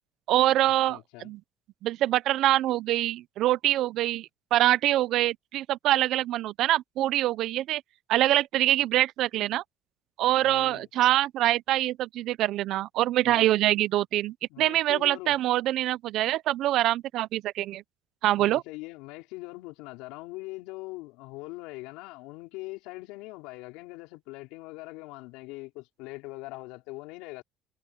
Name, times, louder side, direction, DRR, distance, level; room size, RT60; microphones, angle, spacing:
voice 1, 0.3-1.4 1.8-7.8 8.1-9.6 10.2-17.8 18.2-18.6, right 14 dB, 55° right, 0.5 m, -25 dB
voice 2, 0.9-1.3 10.4-10.9 13.2-13.5 14.5-15.4 18.3-27.4, left 22 dB, 85° left, 4.9 m, -42 dB
cardioid pair, 155°, 0 cm